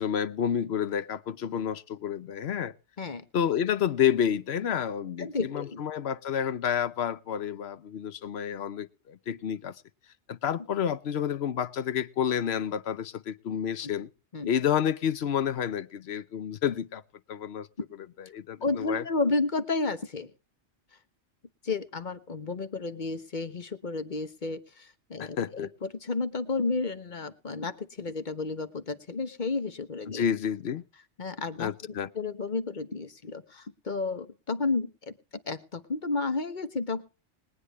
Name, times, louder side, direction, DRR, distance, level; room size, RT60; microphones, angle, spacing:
voice 1, 0.0-2.7 3.3-9.8 10.3-14.1 14.5-17.0 17.3-17.7 18.2-19.0 25.2-25.7 30.1-30.8 31.6-32.1, left 8 dB, 65° left, 1.0 m, -29 dB
voice 2, 5.2-5.8 14.3-14.5 17.8-17.9 18.6-20.3 21.6-30.2 31.2-31.7 32.1-35.1 35.5-37.0, left 3 dB, 45° left, 1.2 m, -32 dB
21.0 x 9.7 x 3.1 m
omnidirectional pair, 1.2 m